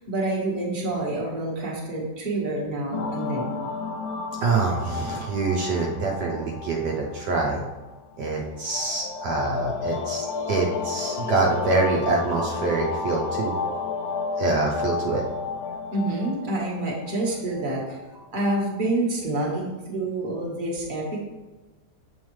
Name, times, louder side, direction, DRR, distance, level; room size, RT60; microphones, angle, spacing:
voice 1, 0.0-3.6 15.9-18.0 18.3-21.2, right 2 dB, 30° right, -3 dB, 1.4 m, -27 dB
sound 1, 2.9-18.2, left 5 dB, 70° left, 1.0 m, -32 dB
voice 2, 4.4-7.6 8.2-13.5 14.3-15.2, right 3 dB, 70° right, -1 dB, 1.3 m, -25 dB
7.2 x 5.2 x 3.1 m, 1.2 s
omnidirectional pair, 1.9 m